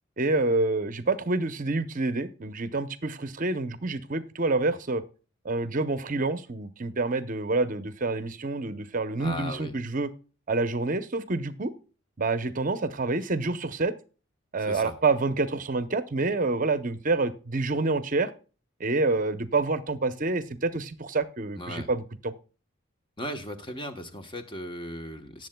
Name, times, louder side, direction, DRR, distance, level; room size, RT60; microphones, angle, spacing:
voice 1, 0.2-5.0 5.4-10.1 10.5-11.7 12.2-13.9 14.5-18.3 18.8-22.3, right 3 dB, 40° right, 12 dB, 0.7 m, -27 dB
voice 2, 9.2-9.7 14.6-15.0 21.6-21.9 23.2-25.5, left 1 dB, 25° left, 7 dB, 1.0 m, -37 dB
18.5 x 7.6 x 2.2 m, 0.35 s
head